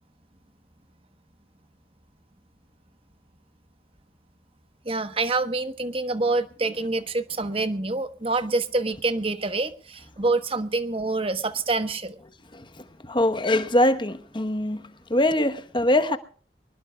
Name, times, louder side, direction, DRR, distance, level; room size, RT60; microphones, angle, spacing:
voice 1, 4.8-12.2, right 3 dB, 30° right, 1.1 m, -26 dB
voice 2, 13.0-14.8 15.1-16.2, left 1 dB, 25° left, 1.1 m, -22 dB
24.5 x 20.0 x 2.3 m
head